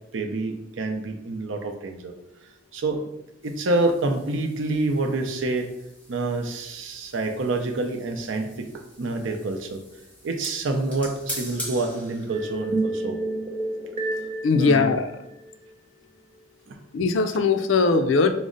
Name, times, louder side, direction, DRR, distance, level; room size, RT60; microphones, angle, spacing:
voice 1, 0.1-2.1 2.7-3.1 3.4-5.7 6.1-9.8 10.2-13.2 14.5-14.9 16.7-16.8, right 2 dB, 85° right, 4 dB, 0.5 m, -27 dB
sound 1, 3.4-12.8, equal, 10° left, 1.2 m, -42 dB
sound 2, 12.3-15.6, right 2 dB, 35° right, 0.5 m, -30 dB
voice 2, 14.4-15.1 16.9-18.3, left 4 dB, 80° left, 8 dB, 0.4 m, -20 dB
5.1 x 2.0 x 3.7 m, 0.86 s
head